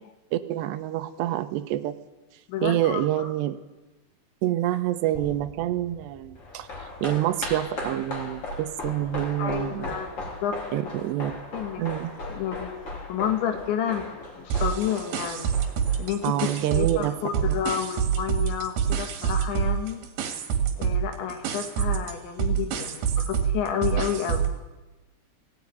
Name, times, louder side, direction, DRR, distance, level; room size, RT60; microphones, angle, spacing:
voice 1, 0.3-2.0 2.6-3.6 4.4-6.7 7.0-9.9 10.7-11.3 11.8-12.1 16.2-17.6, right 13 dB, 80° right, 10 dB, 3.0 m, -27 dB
voice 2, 2.5-3.3 9.4-10.7 11.5-11.8 12.3-12.7 13.1-15.5 16.0-20.0 20.8-24.5, left 9 dB, 85° left, 6 dB, 4.2 m, -30 dB
sound 1, 5.1-9.2, left 1 dB, 10° left, 3.0 m, -50 dB
sound 2, 6.4-16.9 17.2-17.3, left 2 dB, 35° left, 4.2 m, -38 dB
sound 3, 14.5-17.1 17.3-24.6, right 8 dB, 65° right, 3.7 m, -27 dB
17.5 x 17.0 x 9.4 m, 1.1 s
omnidirectional pair, 5.1 m